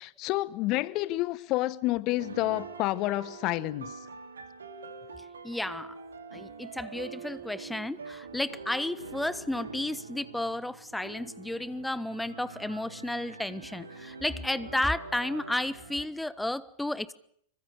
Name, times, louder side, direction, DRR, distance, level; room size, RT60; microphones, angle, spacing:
voice 1, 0.0-4.0, left 18 dB, 40° left, 1.0 m, -29 dB
sound 1, 2.2-16.1, right 4 dB, 70° right, 2.9 m, -44 dB
voice 2, 5.4-5.9 6.3-17.1, left 1 dB, 5° left, 1.2 m, -32 dB
26.0 x 24.0 x 6.8 m
figure-of-eight pair, 90°, 0 cm